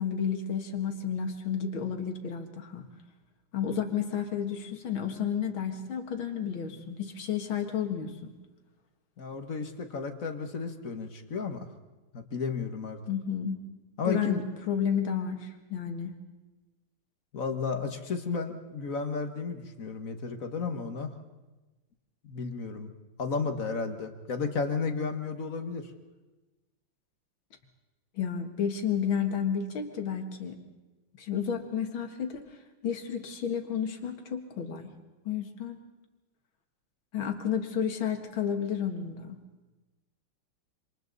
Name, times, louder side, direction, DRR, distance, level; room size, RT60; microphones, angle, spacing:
voice 1, 0.0-2.8 3.5-8.3 13.1-13.6 14.1-14.4 14.7-16.1 28.2-30.6 31.2-32.4 32.8-34.9 35.3-35.8 37.1-39.4, left 8 dB, 70° left, 5 dB, 2.5 m, -31 dB
voice 2, 9.2-11.7 12.1-13.0 14.0-14.4 17.3-21.1 22.2-22.9 23.2-25.9, left 4 dB, 45° left, 7 dB, 1.6 m, -33 dB
27.5 x 26.0 x 4.0 m, 1.1 s
omnidirectional pair, 2.3 m